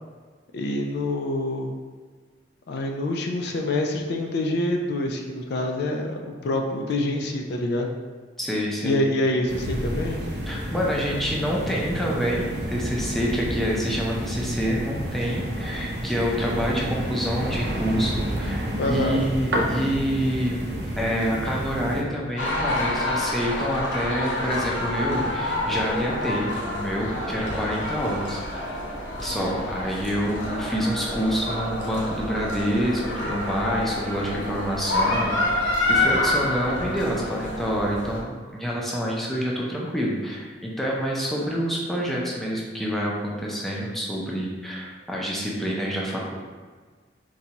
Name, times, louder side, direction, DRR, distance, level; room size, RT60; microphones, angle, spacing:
voice 1, 0.5-1.7 2.7-7.9 8.8-10.2 18.8-19.2, left 1 dB, 60° left, 2 dB, 0.4 m, -26 dB
voice 2, 8.4-9.0 10.5-20.6 21.0-28.8 29.2-35.6 35.9-46.3, equal, ahead, -4 dB, 0.5 m, -27 dB
sound 1, 9.5-22.0, equal, 65° right, 0.5 m, -30 dB
sound 2, 22.4-38.2, left 1 dB, 90° left, 0.7 m, -28 dB
3.9 x 2.3 x 2.8 m, 1.5 s
head